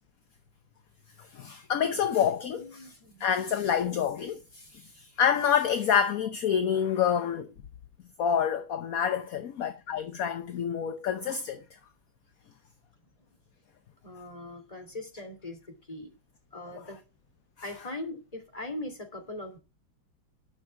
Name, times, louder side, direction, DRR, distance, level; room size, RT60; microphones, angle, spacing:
voice 1, 1.2-2.8 3.2-7.5 8.2-11.6, left 8 dB, 55° left, 1.1 m, -27 dB
voice 2, 2.2-3.3 14.0-16.1 16.5-17.0 17.6-19.6, left 2 dB, 15° left, 2.9 m, -41 dB
10.5 x 6.1 x 7.0 m
omnidirectional pair, 2.2 m